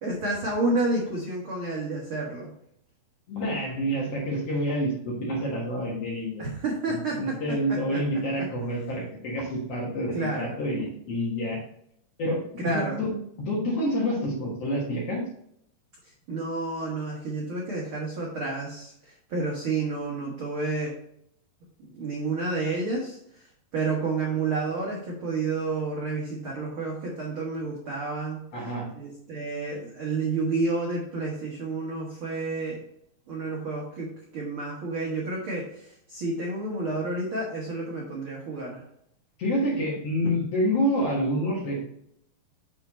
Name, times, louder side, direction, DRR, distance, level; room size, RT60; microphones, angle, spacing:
voice 1, 0.0-2.5 6.4-8.0 10.1-10.5 12.6-13.0 16.3-20.9 21.8-23.5 23.7-28.4 29.0-32.8 33.3-34.1 34.3-38.8, right 3 dB, 85° right, -3 dB, 1.1 m, -30 dB
voice 2, 3.3-6.4 6.9-11.6 12.2-13.1 13.4-15.2 28.5-28.9 39.4-41.9, equal, 55° left, -3 dB, 2.0 m, -28 dB
6.8 x 4.6 x 4.2 m, 0.71 s
omnidirectional pair, 4.4 m